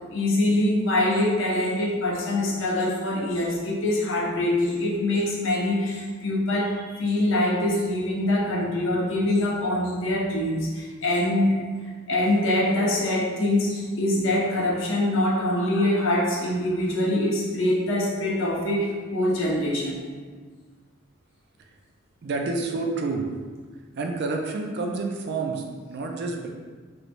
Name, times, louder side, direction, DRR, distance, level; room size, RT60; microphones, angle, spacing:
voice 1, 0.1-11.6 12.1-20.0, left 1 dB, 60° left, -3 dB, 0.6 m, -24 dB
voice 2, 22.2-23.3 24.0-26.5, right 3 dB, 50° right, 2 dB, 0.3 m, -29 dB
3.1 x 3.0 x 2.5 m, 1.5 s
head